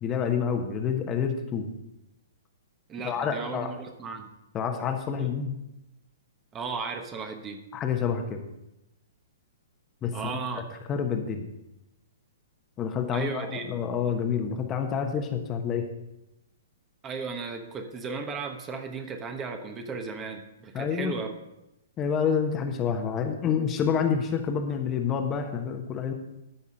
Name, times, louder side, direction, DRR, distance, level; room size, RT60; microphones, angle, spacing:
voice 1, 0.0-1.7 3.0-3.7 4.5-5.5 7.7-8.4 10.0-10.1 10.6-10.7 10.9-11.5 12.8-15.9 20.7-21.1 22.0-26.1, left 7 dB, 25° left, 5 dB, 1.1 m, -28 dB
voice 2, 2.9-4.3 5.2-5.3 6.5-7.6 10.1-10.6 13.1-13.6 17.0-21.3, right 4 dB, 20° right, 5 dB, 1.2 m, -35 dB
13.5 x 5.6 x 5.5 m, 0.90 s
figure-of-eight pair, 115°, 0 cm